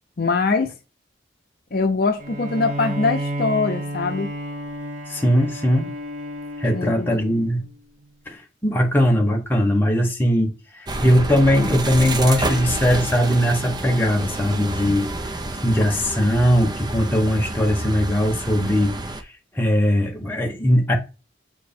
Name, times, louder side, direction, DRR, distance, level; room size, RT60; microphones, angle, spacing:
voice 1, 0.2-0.7 1.7-4.3 6.7-7.2, left 4 dB, 50° left, 0.7 m, -22 dB
Bowed string instrument, 2.2-7.7, right 1 dB, 40° right, 1.0 m, -31 dB
voice 2, 5.1-5.9 6.6-7.6 8.3-15.1 15.6-19.0 19.5-20.9, equal, 10° left, 1.0 m, -20 dB
sound 1, 10.9-19.2, right 2 dB, 20° right, 0.5 m, -29 dB
7.5 x 3.1 x 4.3 m
head